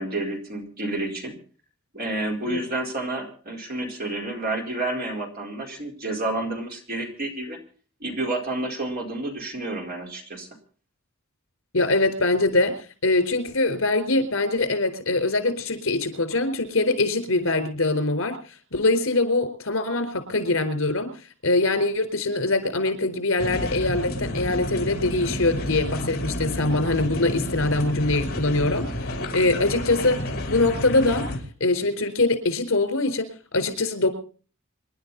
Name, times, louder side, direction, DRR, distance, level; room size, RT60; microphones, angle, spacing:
voice 1, 0.0-1.4 1.9-7.6 8.0-10.5, right 2 dB, 45° right, 2 dB, 4.5 m, -30 dB
voice 2, 11.7-21.1 21.4-31.3 31.6-34.1, left 2 dB, 70° left, 9 dB, 4.4 m, -23 dB
sound 1, 23.4-31.4, left 1 dB, 50° left, 5.0 m, -30 dB
27.5 x 11.5 x 4.1 m, 0.40 s
head